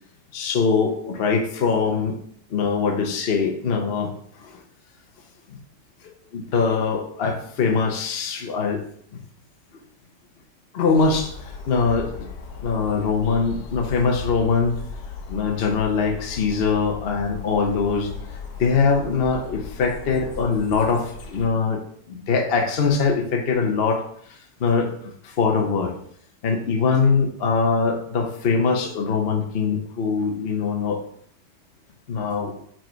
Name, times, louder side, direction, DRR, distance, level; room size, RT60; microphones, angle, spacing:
voice 1, 0.3-2.2 2.5-4.1 4.4-4.5 6.3-8.8 9.1-9.2 10.7-11.3 11.7-12.3 12.6-14.8 15.3-18.1 18.6-24.0 24.6-25.9 26.4-31.0 32.1-32.5, left 5 dB, 50° left, 3 dB, 0.8 m, -22 dB
sound 1, 11.0-21.5, left 5 dB, 80° left, 1.4 m, -37 dB
5.2 x 4.4 x 4.5 m, 0.65 s
omnidirectional pair, 1.9 m